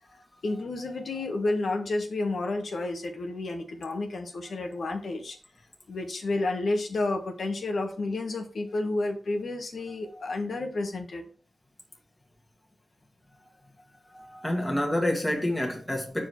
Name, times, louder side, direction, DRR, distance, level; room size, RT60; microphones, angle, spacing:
voice 1, 0.4-5.4 5.9-11.2, left 2 dB, 70° left, 1.5 m, -30 dB
voice 2, 14.1-16.3, left 1 dB, 15° left, 1.9 m, -28 dB
6.4 x 4.9 x 4.7 m
cardioid pair, 50°, 0 cm